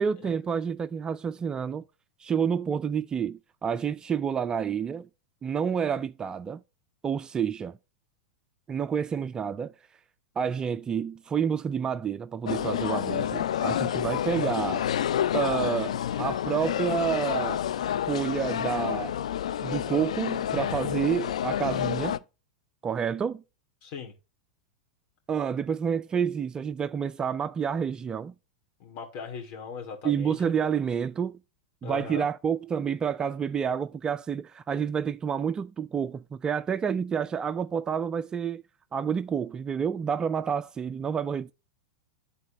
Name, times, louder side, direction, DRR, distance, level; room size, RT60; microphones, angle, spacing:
voice 1, 0.0-1.8 2.2-5.1 5.4-6.6 7.0-7.8 8.7-9.7 10.4-14.8 15.3-17.6 18.1-19.1 19.6-22.2 22.8-23.4 25.3-28.3 30.0-31.3 31.8-38.6 38.9-41.5, right 7 dB, 20° right, 0.3 m, -29 dB
sound 1, 12.4-22.2, left 10 dB, 75° left, 0.4 m, -29 dB
voice 2, 23.8-24.1 28.8-30.5 31.8-32.3, left 6 dB, 50° left, 2.4 m, -39 dB
11.5 x 4.1 x 2.9 m
hypercardioid pair, 100°, 4 cm